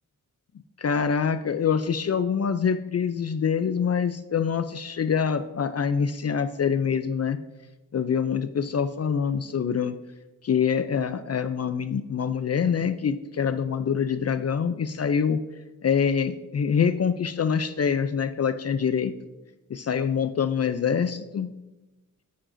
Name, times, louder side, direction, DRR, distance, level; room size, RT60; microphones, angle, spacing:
voice 1, 0.8-7.4 7.9-9.9 10.4-15.4 15.8-19.1 19.7-21.5, left 7 dB, 50° left, 12 dB, 0.4 m, -25 dB
9.0 x 8.5 x 2.6 m, 1.1 s
wide cardioid pair, 80°, 34 cm